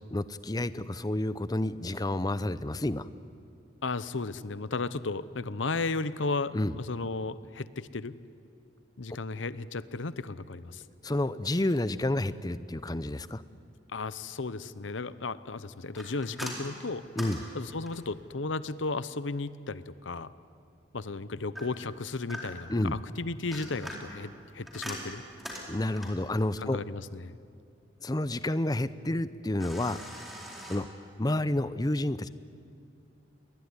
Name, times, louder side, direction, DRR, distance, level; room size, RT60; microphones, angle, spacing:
voice 1, 0.1-3.1 6.5-6.8 11.0-13.4 17.2-17.4 22.7-23.0 25.7-26.8 28.0-30.0 30.7-30.9 31.2-32.3, left 1 dB, 20° left, 14 dB, 0.7 m, -29 dB
voice 2, 3.8-8.2 9.0-10.8 13.9-17.0 17.5-20.3 20.9-25.2 26.6-27.4, left 3 dB, 85° left, 15 dB, 0.9 m, -34 dB
sound 1, 15.9-18.2 21.6-22.8 23.3-26.3 29.6-30.8, equal, ahead, 4.3 m, -42 dB
28.0 x 21.5 x 9.8 m, 2.4 s
head